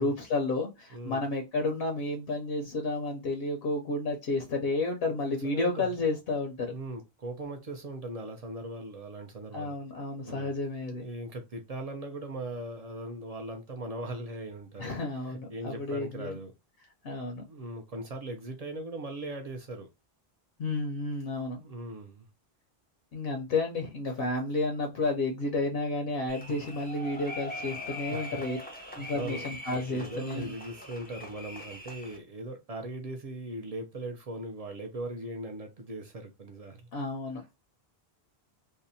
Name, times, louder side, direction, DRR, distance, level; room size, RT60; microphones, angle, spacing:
voice 1, 0.0-6.7 9.5-11.0 14.8-16.3 17.0-17.4 20.6-21.6 23.1-28.6 29.0-30.5 36.9-37.4, left 2 dB, 70° left, 0.7 m, -31 dB
voice 2, 0.9-1.2 5.2-5.9 6.7-9.8 10.2-10.5 10.9-15.0 15.3-16.5 17.5-19.9 21.5-22.3 28.1-28.4 28.7-29.4 29.9-36.9 37.3-37.5, right 2 dB, 55° right, 0.4 m, -39 dB
sound 1, 26.3-32.2, left 2 dB, 15° left, 0.4 m, -42 dB
2.7 x 2.1 x 2.6 m
omnidirectional pair, 1.1 m